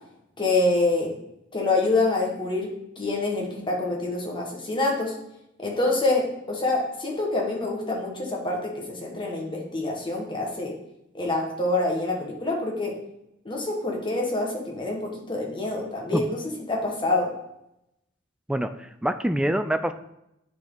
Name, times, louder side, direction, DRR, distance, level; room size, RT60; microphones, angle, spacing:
voice 1, 0.4-1.1 1.5-5.1 5.6-10.7 11.1-12.9 13.4-16.4 16.7-17.3, left 2 dB, 25° left, -1 dB, 1.5 m, -26 dB
voice 2, 18.5-19.9, right 1 dB, 5° right, 9 dB, 0.3 m, -25 dB
9.9 x 4.4 x 3.9 m, 0.82 s
head